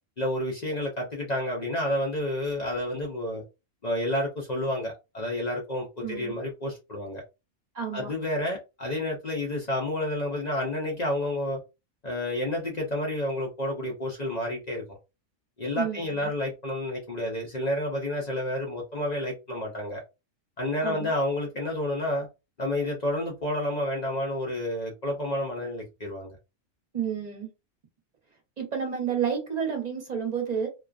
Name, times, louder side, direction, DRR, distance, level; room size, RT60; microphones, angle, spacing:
voice 1, 0.2-3.4 3.8-7.2 7.9-11.6 12.0-15.0 15.6-20.0 20.6-22.3 22.6-26.4, left 1 dB, 50° left, 0.5 m, -30 dB
voice 2, 6.0-6.4 7.7-8.1 15.7-16.3 20.8-21.1 26.9-27.5 28.6-30.7, right 7 dB, 40° right, 0.7 m, -30 dB
2.3 x 2.2 x 2.4 m
omnidirectional pair, 1.4 m